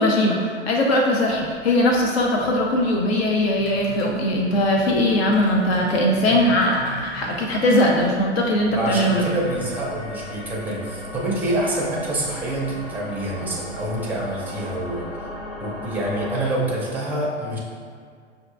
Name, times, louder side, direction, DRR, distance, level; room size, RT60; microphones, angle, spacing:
voice 1, 0.0-9.3, left 1 dB, 60° left, -1 dB, 0.6 m, -20 dB
sound 1, 1.3-9.3, right 1 dB, 30° left, 1.1 m, -40 dB
voice 2, 8.7-15.1 15.6-17.6, right 1 dB, 5° right, -4 dB, 0.5 m, -26 dB
sound 2, 9.0-16.4, left 1 dB, 90° left, 1.4 m, -37 dB
5.6 x 2.5 x 2.4 m, 2.1 s
figure-of-eight pair, 105°, 35 cm